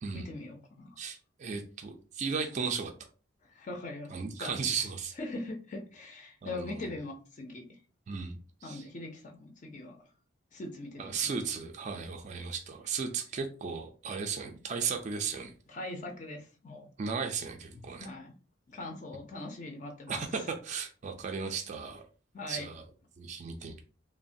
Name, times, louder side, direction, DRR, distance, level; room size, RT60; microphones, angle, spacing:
voice 1, 0.1-1.0 3.5-4.6 5.2-7.7 8.6-10.0 10.5-11.5 15.7-16.9 17.7-18.4 18.7-20.2 22.3-22.7, left 2 dB, 40° left, 2 dB, 0.4 m, -41 dB
voice 2, 1.0-2.9 4.1-5.1 6.4-6.9 8.1-8.8 11.0-15.5 17.0-18.1 20.1-22.0 22.5-22.8 23.2-23.8, right 5 dB, 35° right, 4 dB, 0.3 m, -35 dB
3.0 x 2.1 x 2.6 m, 0.38 s
head